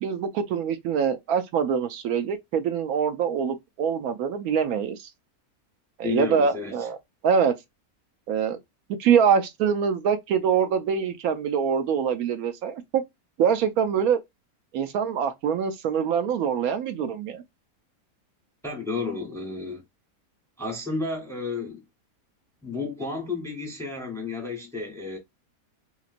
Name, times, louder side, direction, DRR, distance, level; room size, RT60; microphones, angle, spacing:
voice 1, 0.0-5.1 6.0-7.0 7.2-7.5 8.3-8.6 9.0-13.0 13.4-14.2 14.7-17.4, right 7 dB, 75° right, 1.0 m, -24 dB
voice 2, 6.0-6.9 18.6-19.8 20.6-21.8 22.6-25.2, left 4 dB, 5° left, 0.7 m, -32 dB
2.9 x 2.9 x 2.5 m
omnidirectional pair, 1.6 m